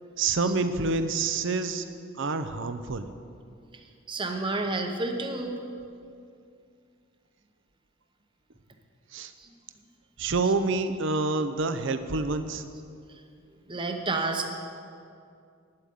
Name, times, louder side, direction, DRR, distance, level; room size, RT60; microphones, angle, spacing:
voice 1, 0.2-1.9 2.2-3.1 9.1-9.3 10.2-12.6, right 3 dB, 60° right, 10 dB, 0.7 m, -27 dB
voice 2, 4.1-5.6 9.4-9.5 10.4-10.5 13.7-14.5, right 2 dB, 25° right, 4 dB, 0.9 m, -30 dB
8.9 x 8.7 x 9.4 m, 2.4 s
head